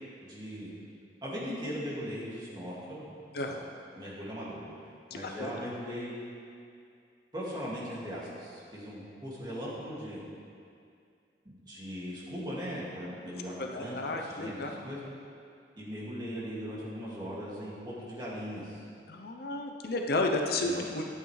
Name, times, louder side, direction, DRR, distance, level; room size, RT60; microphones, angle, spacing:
voice 1, 0.3-0.7 1.2-3.6 3.9-4.6 5.1-6.2 7.3-10.2 11.4-15.0 15.8-18.8 20.6-20.9, equal, 25° right, -8 dB, 2.2 m, -39 dB
voice 2, 13.6-14.7 19.1-21.0, left 2 dB, 60° left, 3 dB, 0.6 m, -32 dB
11.5 x 8.6 x 3.3 m, 2.4 s
head